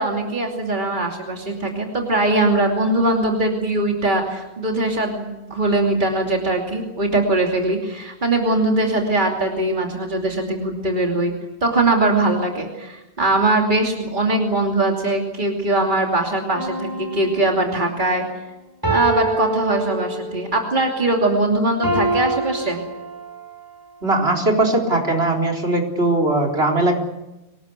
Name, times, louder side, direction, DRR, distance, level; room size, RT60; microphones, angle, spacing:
voice 1, 0.0-11.3 11.6-18.2 18.9-22.8, right 2 dB, 50° right, 1 dB, 3.0 m, -21 dB
sound 1, 16.5-17.8 18.8-20.5 21.8-23.5 24.2-24.3, right 2 dB, 20° right, 7.0 m, -25 dB
voice 2, 24.0-27.0, right 2 dB, 75° right, 4 dB, 4.3 m, -19 dB
25.0 x 19.0 x 8.3 m, 1.0 s
omnidirectional pair, 1.1 m